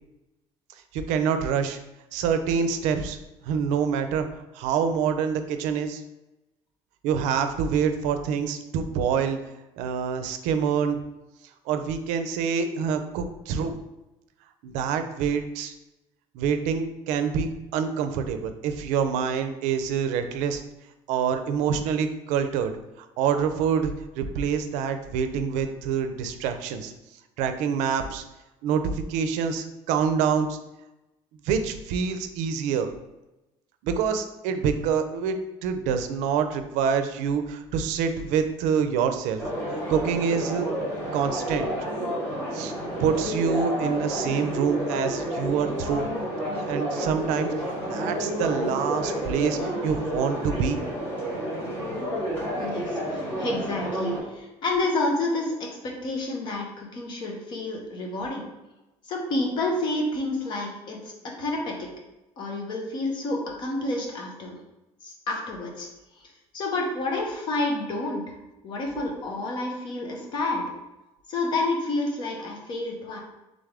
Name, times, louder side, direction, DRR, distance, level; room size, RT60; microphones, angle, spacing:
voice 1, 0.9-1.8 2.1-3.2 3.4-4.3 4.5-6.0 7.0-9.4 9.8-11.0 11.7-13.7 14.6-15.7 16.3-20.6 21.1-22.7 23.0-26.9 27.4-28.2 28.6-30.6 31.4-32.9 33.8-39.4 39.7-40.7 41.1-41.7 42.5-42.7 43.0-46.1 46.5-50.8, right 6 dB, 90° right, 8 dB, 0.4 m, -26 dB
sound 1, 39.4-54.2, equal, 20° left, 1.3 m, -30 dB
voice 2, 52.5-58.5 59.0-61.9 62.4-64.6 65.0-65.9 66.5-68.3 68.6-70.6 71.3-73.2, left 2 dB, 40° left, 0 dB, 0.9 m, -29 dB
3.7 x 3.3 x 3.6 m, 0.98 s
cardioid pair, 170°, 12 cm